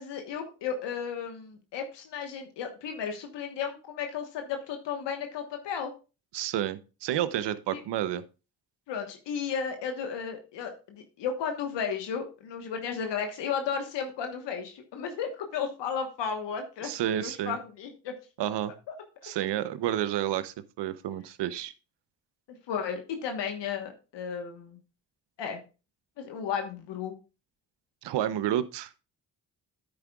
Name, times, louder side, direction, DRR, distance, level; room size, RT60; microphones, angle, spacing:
voice 1, 0.0-5.9 7.7-7.8 8.9-18.1 22.7-24.8 25.4-25.6 26.2-27.2, left 7 dB, 85° left, 5 dB, 1.3 m, -34 dB
voice 2, 6.3-8.2 16.8-17.6 18.4-18.7 19.2-21.7 28.0-28.9, right 11 dB, 75° right, 15 dB, 0.8 m, -30 dB
10.0 x 8.4 x 2.3 m, 0.31 s
supercardioid pair, 55°, 42 cm